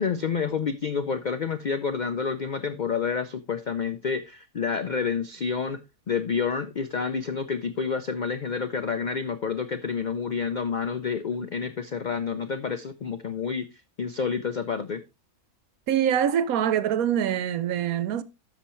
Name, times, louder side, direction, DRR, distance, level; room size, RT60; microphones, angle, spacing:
voice 1, 0.0-5.8 6.1-13.7 14.0-15.0, left 6 dB, 85° left, 0.4 m, -29 dB
voice 2, 15.9-18.2, right 9 dB, 75° right, 1.1 m, -24 dB
13.0 x 5.7 x 3.0 m
omnidirectional pair, 1.6 m